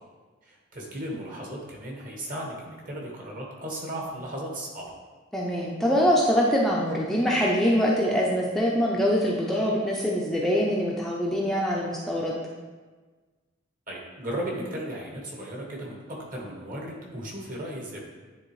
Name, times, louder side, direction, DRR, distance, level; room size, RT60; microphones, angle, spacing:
voice 1, 0.4-4.8 13.9-18.0, right 1 dB, 45° right, -2 dB, 1.4 m, -36 dB
voice 2, 5.3-12.3, equal, ahead, -4 dB, 0.5 m, -24 dB
9.9 x 3.5 x 3.1 m, 1.4 s
head